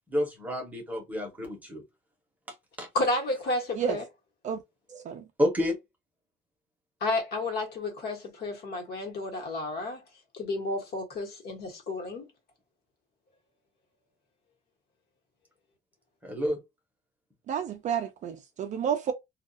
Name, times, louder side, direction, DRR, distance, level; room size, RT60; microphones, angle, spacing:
voice 1, 0.1-1.8 2.8-2.9 4.9-5.0 5.4-5.7 16.2-16.6, left 1 dB, 10° right, 0.8 m, -29 dB
voice 2, 2.9-4.1 7.0-10.0 10.3-12.3, left 2 dB, 55° left, 1.2 m, -31 dB
voice 3, 17.5-19.1, right 8 dB, 40° right, 0.4 m, -30 dB
2.3 x 2.3 x 2.5 m
cardioid pair, 180°, 19 cm